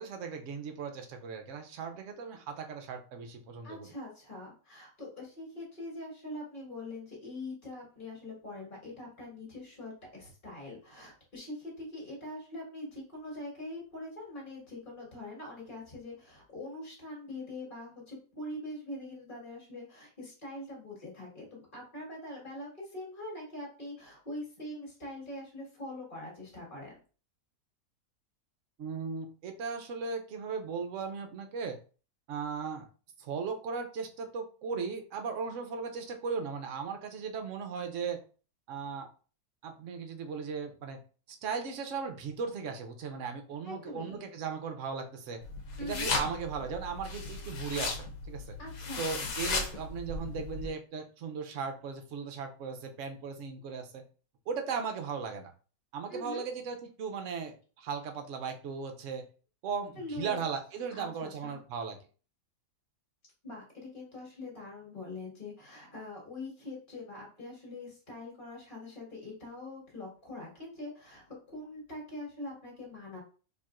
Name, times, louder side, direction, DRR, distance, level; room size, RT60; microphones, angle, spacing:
voice 1, 0.0-3.9 28.8-31.8 32.3-32.8 33.2-38.2 38.7-39.1 39.6-41.0 41.3-45.4 45.8-48.6 49.0-54.0 54.5-55.5 55.9-59.2 59.6-62.0, right 5 dB, 65° right, 5 dB, 0.9 m, -37 dB
voice 2, 3.6-26.9 43.6-44.2 45.8-46.1 48.6-49.3 56.1-56.4 60.0-60.4 60.9-61.5 63.4-73.2, left 2 dB, 35° left, -3 dB, 1.8 m, -43 dB
sound 1, 45.4-50.7, left 4 dB, 70° left, 1.3 m, -36 dB
4.4 x 3.0 x 2.5 m, 0.38 s
omnidirectional pair, 1.6 m